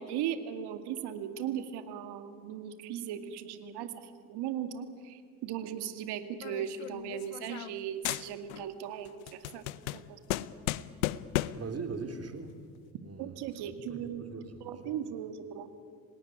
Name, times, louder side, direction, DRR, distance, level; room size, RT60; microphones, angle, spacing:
voice 1, 0.0-9.6 9.9-10.2 13.2-14.3 14.6-15.7, right 9 dB, 65° right, 8 dB, 2.2 m, -38 dB
sound 1, 6.4-7.8 8.0-8.7 9.0-11.7, left 16 dB, 80° left, 0.8 m, -35 dB
voice 2, 11.5-12.6 13.0-15.0, right 4 dB, 35° right, 6 dB, 3.6 m, -41 dB
27.5 x 18.5 x 9.9 m, 2.1 s
hypercardioid pair, 55°, 42 cm